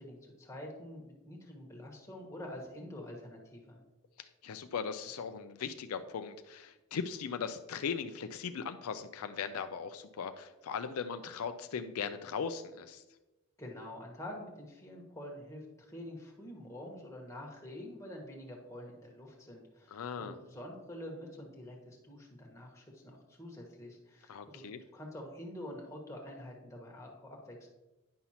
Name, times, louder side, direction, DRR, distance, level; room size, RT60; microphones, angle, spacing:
voice 1, 0.0-3.8 13.6-24.6 24.9-27.7, left 1 dB, 15° left, -1 dB, 1.2 m, -47 dB
voice 2, 4.4-13.0 19.9-20.3 24.3-24.8, left 6 dB, 80° left, 9 dB, 0.4 m, -38 dB
9.6 x 5.6 x 2.9 m, 1.0 s
head